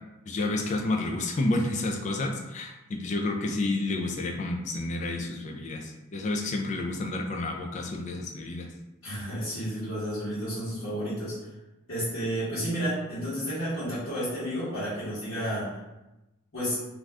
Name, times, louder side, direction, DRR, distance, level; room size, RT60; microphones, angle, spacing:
voice 1, 0.3-8.7, left 2 dB, 35° left, 2 dB, 0.3 m, -30 dB
voice 2, 9.0-11.4 11.9-15.8 16.5-16.8, equal, 70° left, -12 dB, 1.1 m, -31 dB
2.5 x 2.3 x 3.3 m, 0.97 s
head